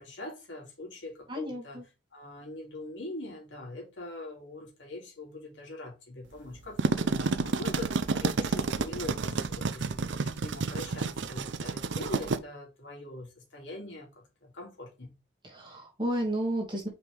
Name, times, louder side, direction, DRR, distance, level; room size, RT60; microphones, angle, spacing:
voice 1, 0.0-1.8 2.1-15.1, left 2 dB, 80° left, 2.7 m, -43 dB
voice 2, 1.3-1.8 15.4-16.9, right 1 dB, 25° right, 2.4 m, -32 dB
sound 1, 6.6-12.4, right 4 dB, 80° right, 0.6 m, -30 dB
5.9 x 5.0 x 3.5 m
head